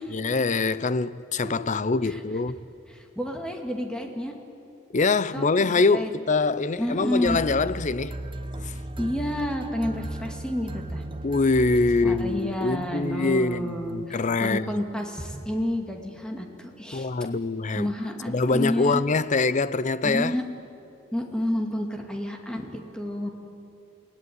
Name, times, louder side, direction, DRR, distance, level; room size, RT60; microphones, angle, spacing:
voice 1, 0.1-2.6 4.9-8.2 8.6-8.7 11.2-14.7 16.9-17.9 18.3-20.3, left 3 dB, 40° left, 0.6 m, -24 dB
voice 2, 2.9-4.3 5.3-6.1 6.8-7.4 9.0-11.0 12.0-17.1 17.7-19.0 20.0-20.4 21.1-23.3, left 1 dB, 5° left, 2.5 m, -30 dB
sound 1, 7.3-12.9, right 1 dB, 25° right, 0.9 m, -36 dB
28.5 x 18.5 x 9.6 m
head